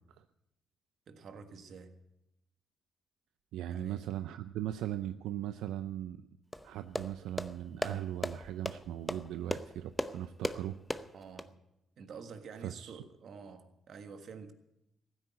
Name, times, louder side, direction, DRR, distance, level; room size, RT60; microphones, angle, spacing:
voice 1, 1.1-2.0 3.7-4.0 11.1-11.6 12.0-14.5, right 5 dB, 60° right, 1.6 m, -48 dB
voice 2, 3.5-6.2 6.6-10.7 12.6-13.0, right 12 dB, 90° right, 0.5 m, -38 dB
sound 1, 6.5-11.5, left 1 dB, 5° left, 0.8 m, -38 dB
15.5 x 9.8 x 8.3 m
cardioid pair, 90°, 0 cm